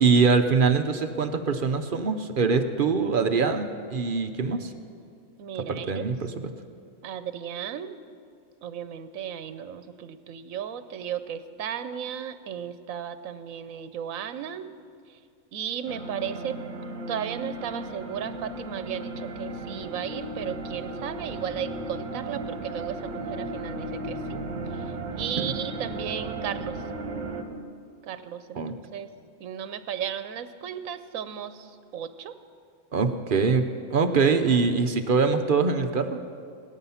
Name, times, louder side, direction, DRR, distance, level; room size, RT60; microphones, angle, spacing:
voice 1, 0.0-4.7 5.7-6.3 25.4-25.5 28.6-28.7 32.9-33.7 33.9-36.2, right 4 dB, 50° right, 7 dB, 0.8 m, -23 dB
voice 2, 5.4-6.0 7.0-8.0 8.6-14.7 15.1-15.2 15.5-16.6 17.1-24.4 24.7-26.8 28.0-28.6 28.9-29.1 29.4-32.3, right 9 dB, 80° right, 12 dB, 1.1 m, -35 dB
sound 1, 15.8-27.4, right 2 dB, 65° right, 1.5 m, -35 dB
17.0 x 12.0 x 5.7 m, 2.3 s
omnidirectional pair, 1.4 m